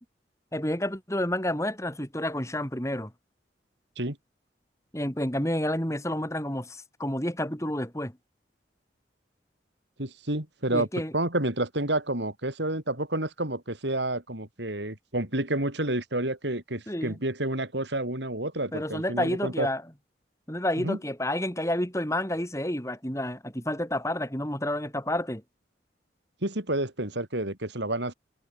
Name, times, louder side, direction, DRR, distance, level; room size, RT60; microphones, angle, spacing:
voice 1, 0.5-3.1 4.9-8.1 10.7-11.1 16.9-17.2 18.7-19.8 20.5-25.4, left 1 dB, 15° left, 6.5 m, -30 dB
voice 2, 10.0-10.9 11.1-19.7 20.8-21.0 26.4-28.1, right 1 dB, 75° right, 5.7 m, -29 dB
head